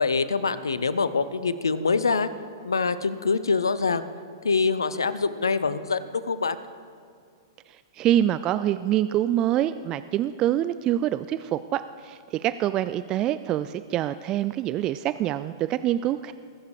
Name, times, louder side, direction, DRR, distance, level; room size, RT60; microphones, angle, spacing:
voice 1, 0.0-2.3 2.6-4.0 4.4-6.6, left 4 dB, 85° left, 14 dB, 0.7 m, -24 dB
voice 2, 7.9-16.3, right 12 dB, 30° right, 13 dB, 0.3 m, -25 dB
21.0 x 7.3 x 4.9 m, 2.2 s
hypercardioid pair, 110°, 2 cm